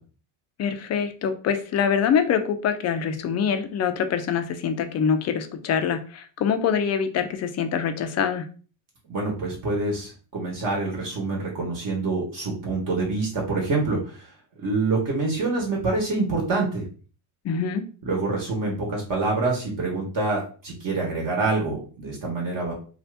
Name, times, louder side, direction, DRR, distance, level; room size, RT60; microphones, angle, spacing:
voice 1, 0.6-8.5 17.4-17.8, left 7 dB, 35° left, 8 dB, 0.5 m, -24 dB
voice 2, 9.1-14.2 14.6-16.9 18.0-22.7, right 3 dB, 40° right, -2 dB, 1.1 m, -26 dB
2.8 x 2.4 x 3.3 m, 0.38 s
cardioid pair, 120°, 49 cm